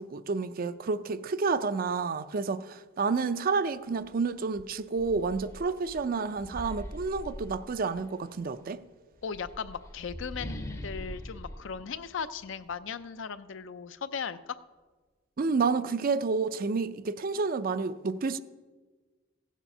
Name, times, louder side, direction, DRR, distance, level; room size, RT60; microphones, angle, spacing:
voice 1, 0.0-8.8 15.4-18.4, right 4 dB, 45° right, 0.4 m, -30 dB
sound 1, 4.0-4.2 4.6-8.2 9.1-12.8, equal, 15° left, 0.6 m, -43 dB
voice 2, 9.2-14.6, left 6 dB, 65° left, 0.5 m, -37 dB
16.0 x 7.3 x 5.5 m
head